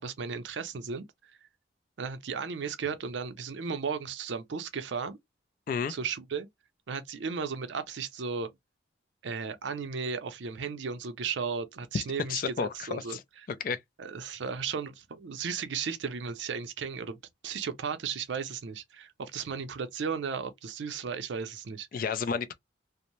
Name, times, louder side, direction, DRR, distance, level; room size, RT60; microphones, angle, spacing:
voice 1, 0.0-1.3 2.0-5.2 5.9-6.5 6.9-8.5 9.2-13.2 14.0-17.2 17.4-22.1, right 5 dB, 70° right, 0.5 m, -35 dB
voice 2, 12.3-13.2 13.5-13.8 21.9-22.5, left 6 dB, 45° left, 0.3 m, -31 dB
2.6 x 2.0 x 3.0 m
head